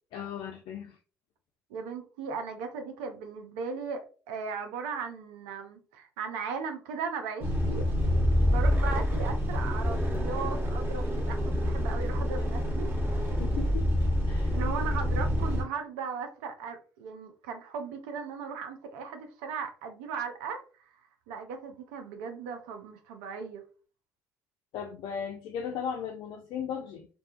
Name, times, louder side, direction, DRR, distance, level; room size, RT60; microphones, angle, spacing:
voice 1, 0.1-1.0 13.4-13.9 14.3-14.6 24.7-27.1, left 7 dB, 65° left, 0.4 m, -36 dB
voice 2, 1.7-7.9 8.5-12.9 14.5-21.0 21.3-23.6, right 5 dB, 80° right, 0.5 m, -37 dB
sound 1, 7.4-15.6, equal, 30° right, 1.2 m, -27 dB
2.6 x 2.3 x 2.5 m
hypercardioid pair, 55°, 9 cm